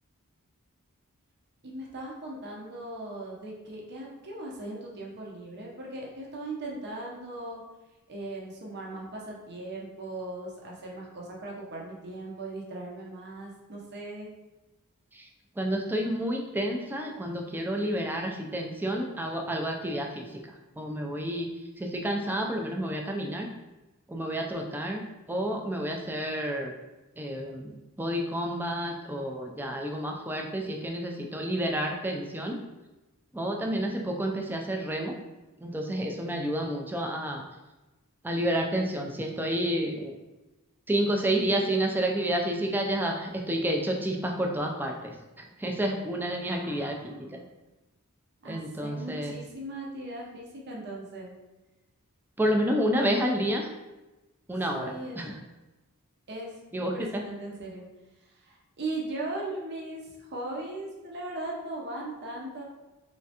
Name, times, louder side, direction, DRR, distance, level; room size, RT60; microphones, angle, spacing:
voice 1, 1.6-7.6 8.1-14.3 46.3-47.5 48.4-51.3 53.2-53.3 54.7-55.2 56.3-57.9 58.3-62.6, right 2 dB, 50° right, -2 dB, 0.7 m, -38 dB
voice 2, 15.6-20.4 20.8-21.5 21.8-23.5 24.1-25.0 25.3-26.7 27.2-32.6 33.3-35.1 35.6-37.4 38.2-40.1 40.9-47.1 48.4-49.4 52.4-53.7 54.5-55.4 56.7-56.9, right 1 dB, 10° right, 2 dB, 0.4 m, -30 dB
3.5 x 3.2 x 2.8 m, 1.1 s
head